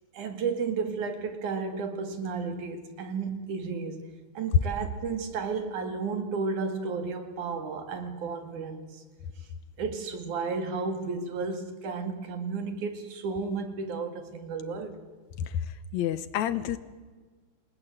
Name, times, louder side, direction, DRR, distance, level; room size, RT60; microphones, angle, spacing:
voice 1, 0.1-4.0 4.4-9.0 9.8-15.0, right 4 dB, 75° right, 3.6 m, -33 dB
voice 2, 15.9-16.8, left 11 dB, 70° left, 2.2 m, -29 dB
29.0 x 19.5 x 7.9 m
omnidirectional pair, 3.5 m